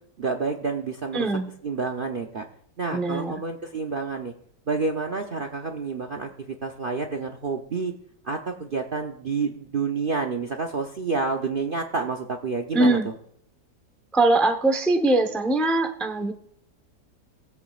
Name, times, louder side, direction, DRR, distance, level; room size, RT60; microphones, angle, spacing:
voice 1, 0.2-1.3 1.6-2.5 2.8-4.3 4.7-7.9 8.2-13.1, right 4 dB, 50° right, 5 dB, 0.6 m, -29 dB
voice 2, 1.1-1.5 2.9-3.3 12.7-13.1 14.1-16.3, right 2 dB, ahead, 5 dB, 0.4 m, -22 dB
19.5 x 8.3 x 2.4 m, 0.69 s
omnidirectional pair, 1.8 m